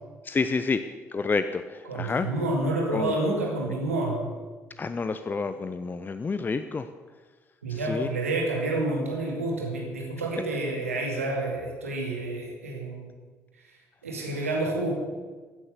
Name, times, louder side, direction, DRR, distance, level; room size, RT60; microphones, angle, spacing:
voice 1, 0.2-0.8 1.1-2.3 2.9-3.1 4.8-6.9 7.7-8.1 14.4-14.5, left 4 dB, 25° left, 10 dB, 0.7 m, -29 dB
voice 2, 1.9-4.3 7.6-13.1 14.0-14.9, right 2 dB, 80° right, 0 dB, 2.2 m, -29 dB
15.5 x 9.6 x 6.9 m, 1.4 s
figure-of-eight pair, 50°, 8 cm